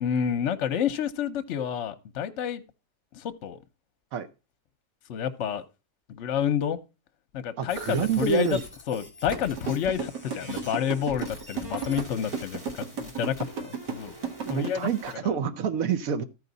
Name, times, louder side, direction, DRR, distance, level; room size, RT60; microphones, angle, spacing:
voice 1, 0.0-2.6 3.1-3.6 5.1-5.6 6.1-6.8 7.3-8.6 8.9-14.1 14.5-14.9, left 8 dB, 55° left, 0.9 m, -29 dB
voice 2, 7.6-8.6 14.4-16.2, right 7 dB, 65° right, 1.1 m, -27 dB
sound 1, 7.7-15.1, left 1 dB, 10° right, 2.5 m, -45 dB
sound 2, 9.3-14.7, right 6 dB, 85° right, 1.9 m, -32 dB
14.0 x 4.8 x 3.9 m
omnidirectional pair, 1.8 m